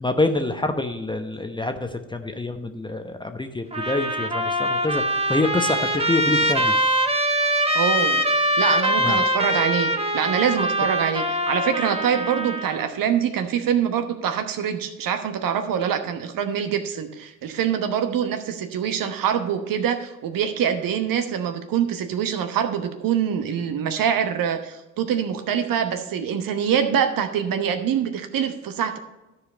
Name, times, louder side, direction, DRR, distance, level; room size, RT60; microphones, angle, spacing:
voice 1, 0.0-1.8 2.1-5.0 5.3-6.7 9.0-9.2, left 2 dB, 10° left, 7 dB, 0.9 m, -26 dB
Trumpet, 3.7-12.9, equal, 15° right, 1.1 m, -23 dB
voice 2, 7.7-8.2 8.6-29.0, right 8 dB, 55° right, 8 dB, 1.1 m, -24 dB
13.0 x 4.9 x 5.1 m, 1.0 s
hypercardioid pair, 55°, 41 cm